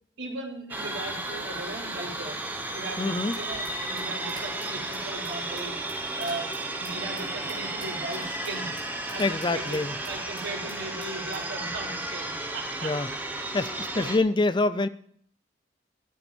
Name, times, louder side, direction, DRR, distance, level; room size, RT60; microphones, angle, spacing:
voice 1, 0.2-2.4 2.7-8.7 9.1-13.2 13.5-14.1, right 2 dB, 85° right, -1 dB, 3.7 m, -38 dB
sound 1, 0.7-14.2, right 2 dB, 10° right, 1.2 m, -33 dB
voice 2, 3.0-3.4 9.2-9.9 12.8-13.0 13.5-14.9, left 2 dB, 25° left, 14 dB, 0.5 m, -25 dB
sound 2, 3.3-10.8 11.0-11.6, right 3 dB, 25° right, 3.5 m, -48 dB
14.0 x 7.0 x 7.3 m, 0.63 s
head